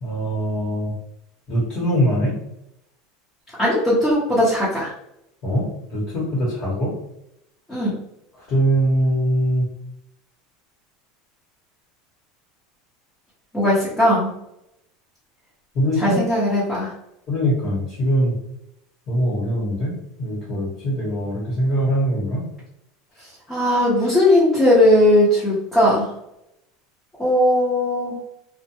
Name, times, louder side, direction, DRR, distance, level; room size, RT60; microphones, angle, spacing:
voice 1, 0.0-0.9 1.5-2.3 5.4-6.9 8.5-9.6 15.7-16.2 17.3-18.3 19.1-22.4, equal, 35° left, -5 dB, 1.1 m, -22 dB
voice 2, 3.6-4.9 7.7-7.9 13.5-14.3 16.0-16.9 23.5-26.1 27.2-28.2, left 1 dB, 10° left, -9 dB, 0.9 m, -18 dB
2.5 x 2.2 x 2.8 m, 0.82 s
supercardioid pair, 145°, 0 cm